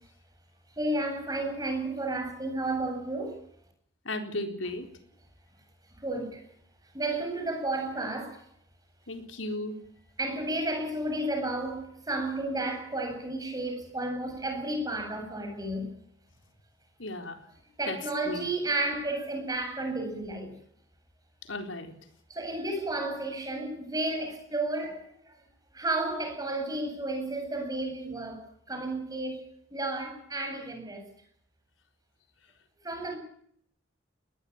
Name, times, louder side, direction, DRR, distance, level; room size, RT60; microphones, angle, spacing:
voice 1, 0.8-3.4 6.0-6.4 6.9-8.4 10.2-15.9 17.8-20.6 22.3-25.3 25.7-29.4 29.7-31.1 32.8-33.2, right 2 dB, 20° right, 7.8 m, -32 dB
voice 2, 4.0-4.9 9.1-9.7 17.0-17.4 17.9-18.0 18.3-18.5 21.5-21.9, left 2 dB, 85° left, 4.1 m, -35 dB
21.0 x 20.0 x 8.8 m
head